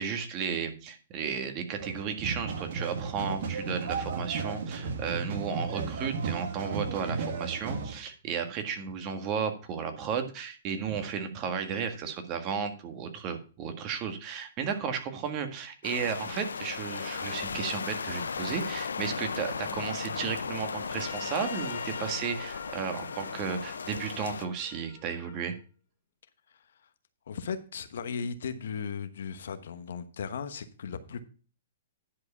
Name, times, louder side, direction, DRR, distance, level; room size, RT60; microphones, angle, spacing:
voice 1, 0.0-25.5, right 6 dB, 35° right, 6 dB, 1.7 m, -34 dB
sound 1, 1.8-7.9, right 4 dB, 60° right, 2.2 m, -34 dB
sound 2, 15.8-24.5, left 5 dB, 90° left, 0.8 m, -36 dB
Trumpet, 20.9-25.5, left 6 dB, 50° left, 2.4 m, -46 dB
voice 2, 26.5-26.9 27.3-31.2, left 6 dB, 75° left, 10 dB, 1.1 m, -37 dB
10.5 x 4.9 x 5.5 m, 0.37 s
hypercardioid pair, 135°, 0 cm